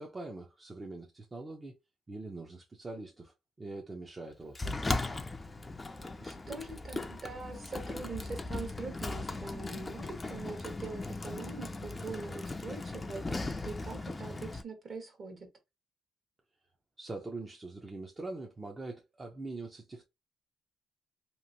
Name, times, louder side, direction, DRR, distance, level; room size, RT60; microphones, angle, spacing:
voice 1, 0.0-1.8 2.1-4.6 17.0-20.0, right 2 dB, 25° right, 0.6 m, -43 dB
Sliding door, 4.5-14.6, left 2 dB, 20° left, 0.4 m, -38 dB
voice 2, 6.0-15.5, right 3 dB, 45° right, 1.2 m, -43 dB
3.0 x 2.5 x 2.6 m
cardioid pair, 90°, 0 cm